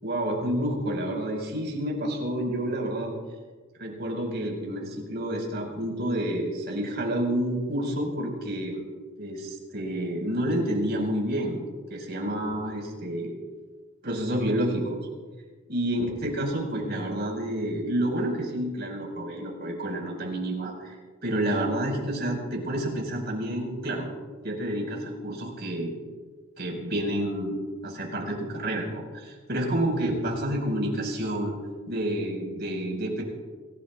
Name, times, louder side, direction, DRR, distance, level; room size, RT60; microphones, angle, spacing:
voice 1, 0.0-3.1 3.8-8.8 9.2-11.6 11.9-13.3 14.0-15.0 15.7-20.9 21.2-24.1 24.4-26.0 26.6-27.6 27.8-31.6 31.9-33.2, right 1 dB, 50° right, -1 dB, 5.1 m, -29 dB
28.5 x 17.5 x 2.4 m, 1.4 s
head